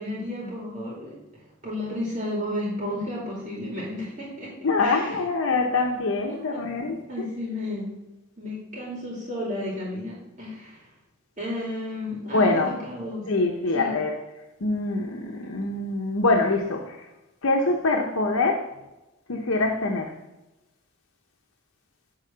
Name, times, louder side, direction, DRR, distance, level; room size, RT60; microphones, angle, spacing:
voice 1, 0.0-4.5 4.8-5.3 6.3-6.6 7.1-7.9 8.4-10.9 11.4-13.2 13.7-14.0, left 1 dB, 35° right, -4 dB, 2.3 m, -33 dB
voice 2, 4.6-7.0 12.3-12.7 13.3-14.1 14.6-17.1 17.4-18.7 19.3-20.1, left 3 dB, 90° left, 2 dB, 0.9 m, -24 dB
8.9 x 3.8 x 6.7 m, 0.99 s
head